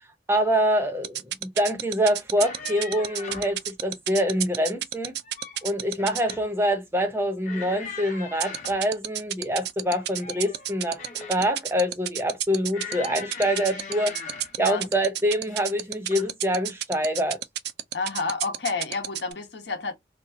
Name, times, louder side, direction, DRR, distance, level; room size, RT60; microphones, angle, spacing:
voice 1, 0.3-5.2 5.6-14.2 14.6-17.4, equal, 15° right, 0.6 m, -25 dB
sound 1, 1.0-6.3 8.4-19.3, right 13 dB, 65° right, 0.3 m, -29 dB
sound 2, 2.2-3.6 5.0-5.6 6.0-6.5 7.4-8.8 9.8-11.5 12.7-14.6 15.4-15.7 16.1-16.3, left 4 dB, 45° left, 0.8 m, -40 dB
voice 2, 17.9-19.9, left 4 dB, 80° left, 0.8 m, -30 dB
2.8 x 2.3 x 2.6 m
head